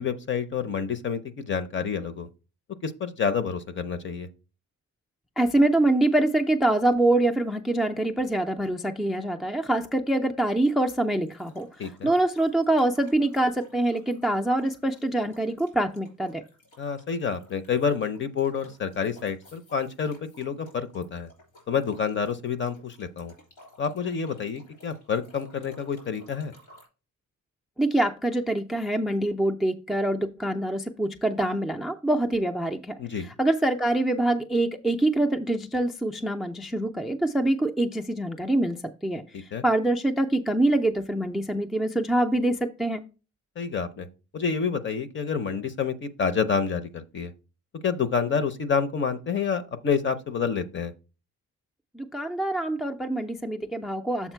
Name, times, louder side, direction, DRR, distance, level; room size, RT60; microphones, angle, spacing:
voice 1, 0.0-2.3 2.8-4.3 11.8-12.1 16.8-21.3 21.7-23.3 23.8-26.5 33.0-33.3 39.3-39.6 43.6-44.1 44.3-47.3 47.8-50.9, left 6 dB, 40° left, 0.7 m, -28 dB
voice 2, 5.4-11.7 12.0-16.4 27.8-33.0 33.2-43.0 51.9-54.3, right 1 dB, ahead, 0.4 m, -25 dB
sound 1, 11.2-26.9, left 1 dB, 85° left, 3.5 m, -55 dB
7.2 x 4.3 x 4.5 m
wide cardioid pair, 150°, 30 cm